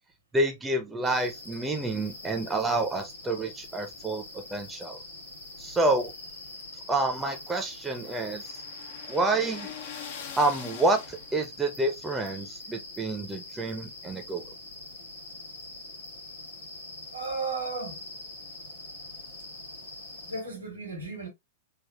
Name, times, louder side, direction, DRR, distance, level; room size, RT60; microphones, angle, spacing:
voice 1, 0.3-5.0 5.6-6.1 6.9-8.6 9.1-9.7 10.4-14.4, right 2 dB, 10° right, 0.6 m, -28 dB
sound 1, 1.0-20.4, left 2 dB, 90° left, 1.2 m, -44 dB
sound 2, 6.0-11.5, left 8 dB, 55° left, 0.5 m, -44 dB
voice 2, 17.1-18.0 20.2-21.3, right 3 dB, 90° right, 1.5 m, -34 dB
3.4 x 2.4 x 2.2 m
figure-of-eight pair, 100°, 0 cm